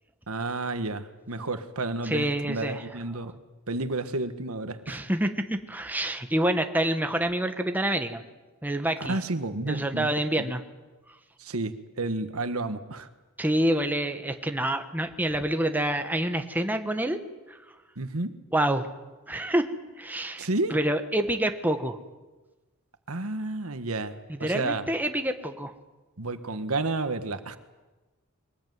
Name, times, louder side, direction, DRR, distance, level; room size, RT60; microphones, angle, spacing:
voice 1, 0.3-3.3 3.7-5.0 9.1-10.1 10.4-10.5 11.4-13.1 18.0-18.3 20.4-20.8 23.1-24.8 26.2-27.6, right 2 dB, 75° right, 10 dB, 1.6 m, -31 dB
voice 2, 2.0-2.9 4.9-8.2 8.6-9.2 9.7-10.6 13.4-17.2 17.5-17.6 18.5-18.9 19.3-19.7 20.0-22.0 24.4-25.7, right 1 dB, 10° right, 6 dB, 1.4 m, -27 dB
23.0 x 19.5 x 9.5 m, 1.2 s
head